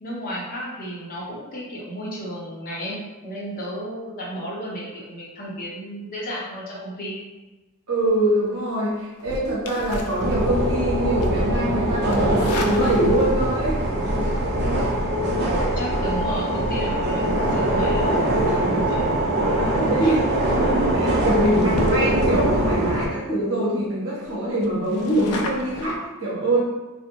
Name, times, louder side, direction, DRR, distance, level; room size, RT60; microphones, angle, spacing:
voice 1, 0.0-7.2 15.5-19.3 20.0-20.1, equal, 40° left, -4 dB, 0.6 m, -33 dB
voice 2, 7.9-13.8 19.8-20.2 20.5-26.6, right 1 dB, 70° right, -7 dB, 0.9 m, -24 dB
sound 1, 9.2-10.8 11.2-11.5 12.1-13.5 14.8-15.0 20.1-20.3 20.8-21.0 21.4-22.5 23.0-23.1 23.3-23.4 23.8-23.9 24.2-26.0, left 2 dB, 75° left, 0.3 m, -33 dB
sound 2, 10.2-23.1, right 1 dB, 50° right, 0.4 m, -22 dB
2.5 x 2.0 x 2.8 m, 1.2 s
head